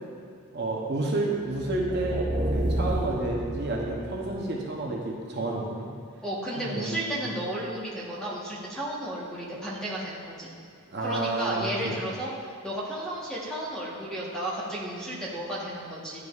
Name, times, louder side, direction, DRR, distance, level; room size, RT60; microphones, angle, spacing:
voice 1, 0.5-2.3 2.5-5.9 6.6-7.3 10.9-12.0, right 2 dB, 50° right, -2 dB, 0.7 m, -30 dB
sound 1, 1.6-4.5, right 1 dB, 20° right, 0.3 m, -30 dB
voice 2, 6.2-10.5 11.0-16.2, right 1 dB, 5° left, -6 dB, 1.1 m, -33 dB
10.5 x 4.9 x 2.4 m, 2.2 s
head